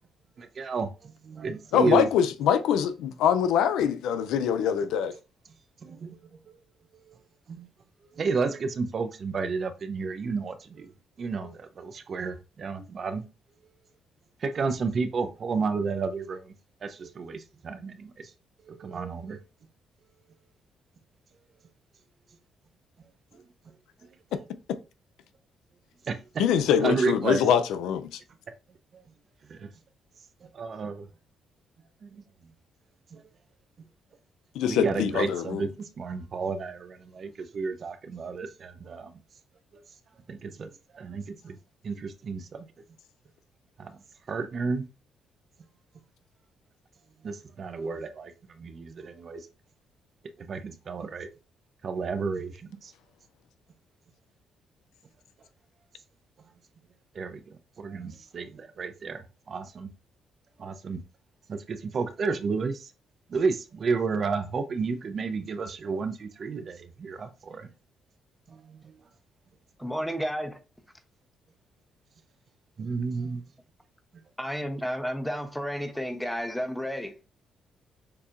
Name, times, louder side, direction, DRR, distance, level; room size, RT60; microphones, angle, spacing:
voice 1, 0.4-2.1 6.0-6.1 7.0-7.2 7.5-7.7 8.0-10.9 11.2-13.3 14.4-16.5 16.8-18.3 18.6-19.4 26.0-26.4 26.8-27.5 28.9-29.0 29.5-29.7 30.5-31.1 32.0-32.2 33.1-33.3 34.6-39.2 39.7-39.8 40.3-41.6 41.8-42.7 43.8-44.0 44.3-44.9 47.2-49.5 50.4-51.3 51.8-52.9 57.1-59.9 60.6-61.0 61.5-62.9 63.3-67.7 68.5-69.0 72.8-73.4, right 4 dB, 50° right, 0.6 m, -32 dB
voice 2, 1.7-5.2 26.4-28.2 34.5-35.6, left 8 dB, 90° left, 0.4 m, -24 dB
voice 3, 69.8-70.6 74.4-77.1, equal, 5° left, 0.9 m, -32 dB
6.6 x 2.8 x 2.5 m
cardioid pair, 90°, 0 cm